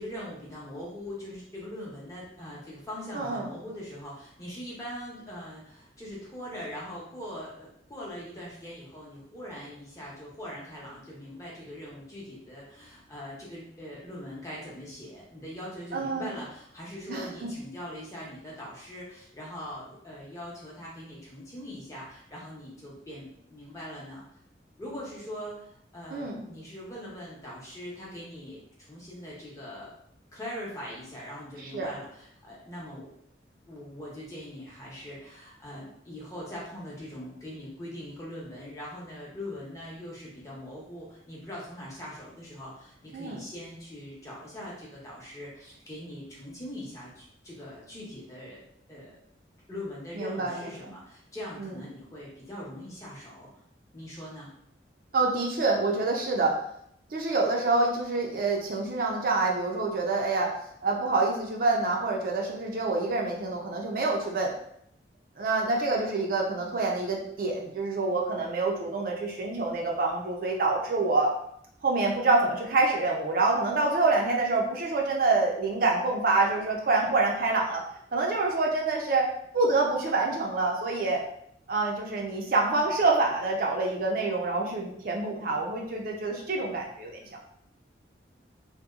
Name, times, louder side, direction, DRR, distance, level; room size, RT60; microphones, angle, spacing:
voice 1, 0.0-24.2 24.8-29.9 30.3-33.1 33.7-48.6 48.9-49.2 49.7-53.5 53.9-54.5, left 1 dB, 20° left, -5 dB, 0.7 m, -41 dB
voice 2, 3.1-3.5 15.9-16.3 17.1-17.5 26.1-26.4 31.6-31.9 43.1-43.4 50.1-50.7 51.6-51.7 55.1-56.6 57.1-60.5 60.8-64.5 65.4-71.3 71.8-77.8 78.1-79.3 79.5-81.2 81.7-87.2, right 3 dB, 50° right, -1 dB, 0.4 m, -26 dB
2.8 x 2.1 x 2.3 m, 0.71 s
head